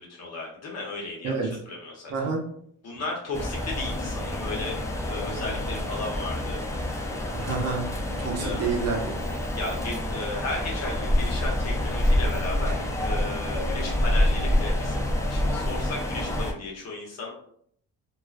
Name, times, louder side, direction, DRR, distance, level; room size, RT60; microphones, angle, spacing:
voice 1, 0.0-2.1 2.8-4.8 5.1-6.6 8.4-8.7 9.5-17.3, left 2 dB, 60° left, -1 dB, 1.0 m, -35 dB
voice 2, 1.2-1.6 2.1-2.5 7.3-7.9 8.2-9.2, right 4 dB, 60° right, 1 dB, 0.7 m, -28 dB
sound 1, 3.3-16.5, left 1 dB, 10° left, 0.3 m, -27 dB
2.4 x 2.2 x 2.4 m, 0.66 s
cardioid pair, 90°, 30 cm